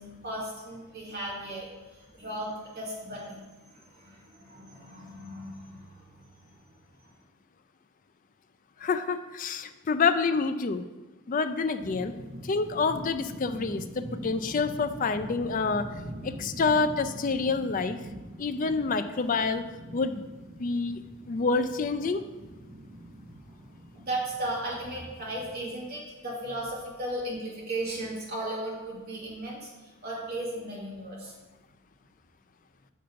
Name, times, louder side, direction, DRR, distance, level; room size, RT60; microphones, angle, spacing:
voice 1, 0.0-6.2 23.9-31.3, right 1 dB, 50° right, -6 dB, 2.6 m, -36 dB
voice 2, 8.8-10.8 11.3-12.1 12.5-15.9 16.2-18.0 18.4-19.6 19.9-20.2 20.6-21.0 21.3-22.2, left 4 dB, 40° left, 10 dB, 0.4 m, -27 dB
sound 1, 11.8-25.6, right 1 dB, 30° right, 1.8 m, -43 dB
6.8 x 5.3 x 5.2 m, 1.2 s
head